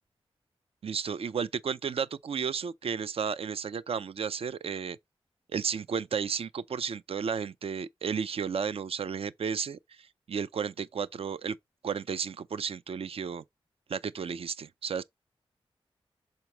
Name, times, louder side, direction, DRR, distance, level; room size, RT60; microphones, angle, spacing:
voice 1, 0.8-5.0 5.5-11.6 11.8-13.4 13.9-15.0, right 6 dB, 70° right, 0.5 m, -33 dB
7.0 x 3.1 x 5.9 m
cardioid pair, 65°, 10 cm